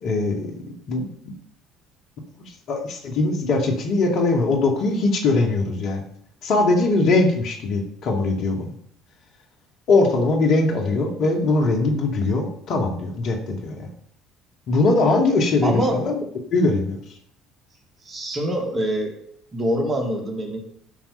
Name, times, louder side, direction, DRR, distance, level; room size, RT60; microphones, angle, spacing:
voice 1, 0.0-1.4 2.7-6.0 6.4-8.7 9.9-13.9 14.7-16.2 16.5-17.0, left 3 dB, 55° left, 2 dB, 2.2 m, -21 dB
voice 2, 15.6-16.0 18.0-19.1 19.5-20.6, equal, 30° right, 2 dB, 3.1 m, -24 dB
12.0 x 5.9 x 5.7 m, 0.69 s
figure-of-eight pair, 55°, 0 cm